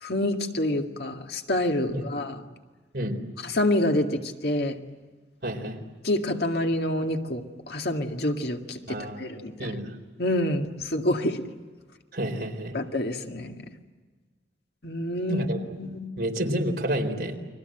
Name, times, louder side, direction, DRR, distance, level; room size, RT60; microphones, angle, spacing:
voice 1, 0.0-2.4 3.4-4.8 6.0-9.8 10.2-11.4 12.7-13.6 14.8-15.4 15.8-16.1, left 1 dB, 65° left, 4 dB, 2.0 m, -27 dB
voice 2, 5.4-5.8 8.9-9.3 9.6-9.9 12.1-12.8 15.3-15.8 16.2-17.4, right 1 dB, 60° right, 3 dB, 4.1 m, -29 dB
30.0 x 23.0 x 7.9 m, 1.4 s
head